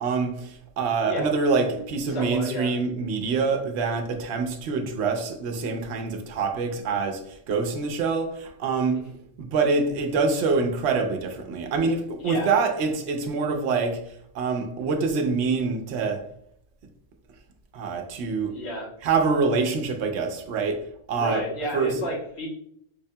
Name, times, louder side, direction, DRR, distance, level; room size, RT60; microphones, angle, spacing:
voice 1, 0.0-9.0 9.4-14.0 14.3-16.2 17.7-18.5 19.0-21.4 21.7-21.9, right 4 dB, 80° right, 0.8 m, -25 dB
voice 2, 2.1-2.7 8.9-9.2 12.2-12.6 18.5-18.9 21.1-22.5, equal, 70° left, 1.3 m, -32 dB
4.5 x 2.2 x 2.7 m
omnidirectional pair, 1.1 m